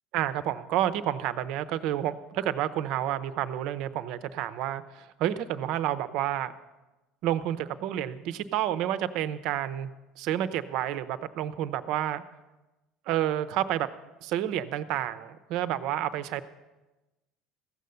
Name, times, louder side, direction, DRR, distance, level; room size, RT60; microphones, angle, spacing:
voice 1, 0.1-6.5 7.2-9.9 10.2-12.2 13.1-13.9 14.2-16.4, right 12 dB, 70° right, 13 dB, 0.7 m, -29 dB
15.5 x 6.6 x 6.9 m, 1.1 s
supercardioid pair, 100°, 0 cm